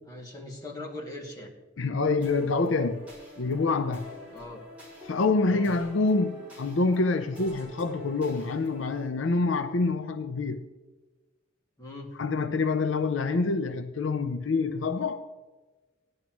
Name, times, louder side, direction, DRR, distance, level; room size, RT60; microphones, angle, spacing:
voice 1, 0.1-1.5 4.3-4.6 5.5-5.7 11.8-12.1, left 2 dB, 20° left, 2.2 m, -40 dB
voice 2, 1.8-3.1 3.4-4.1 5.0-10.6 12.2-15.2, left 3 dB, 75° left, 0.6 m, -26 dB
sound 1, 2.2-9.1, left 1 dB, 10° right, 4.4 m, -46 dB
17.0 x 11.0 x 3.1 m
head